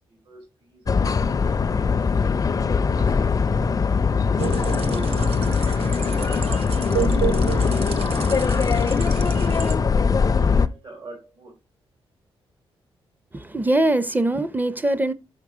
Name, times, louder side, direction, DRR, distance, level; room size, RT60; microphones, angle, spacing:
voice 1, 0.0-1.4 1.8-4.0 4.4-6.7 10.4-11.6, right 2 dB, 60° right, 3.0 m, -47 dB
sound 1, 0.9-10.7, left 5 dB, 35° left, 0.5 m, -21 dB
sound 2, 4.4-9.8, right 8 dB, 80° right, 0.9 m, -30 dB
voice 2, 13.3-15.1, right 1 dB, 15° right, 0.6 m, -22 dB
5.9 x 4.8 x 3.6 m
cardioid pair, 65°, 10 cm